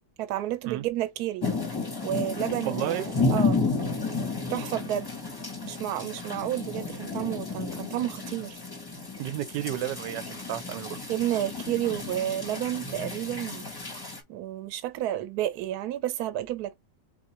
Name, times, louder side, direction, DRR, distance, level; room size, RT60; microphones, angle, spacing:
voice 1, 0.2-1.5 2.0-3.6 4.5-5.1 5.6-8.6 11.1-13.6 14.3-16.8, right 13 dB, 70° right, 1.1 m, -31 dB
sound 1, 1.4-14.2, left 3 dB, 20° left, 0.6 m, -32 dB
voice 2, 2.6-3.1 9.2-11.0, right 13 dB, 90° right, 1.2 m, -32 dB
3.9 x 3.7 x 2.9 m
omnidirectional pair, 1.8 m